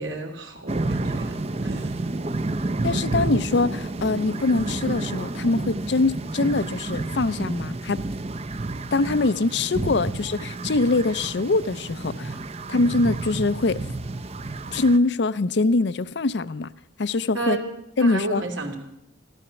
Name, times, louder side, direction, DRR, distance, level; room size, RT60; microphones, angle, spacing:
voice 1, 0.0-1.3 1.6-1.9 17.3-17.7 18.0-18.8, right 2 dB, 80° right, 2.7 m, -31 dB
sound 1, 0.7-15.0, right 2 dB, 30° right, 0.6 m, -30 dB
voice 2, 2.8-8.0 8.9-12.3 12.7-13.8 14.7-16.7 17.0-17.6 18.0-18.4, left 3 dB, 60° left, 0.5 m, -23 dB
15.5 x 12.5 x 7.0 m
head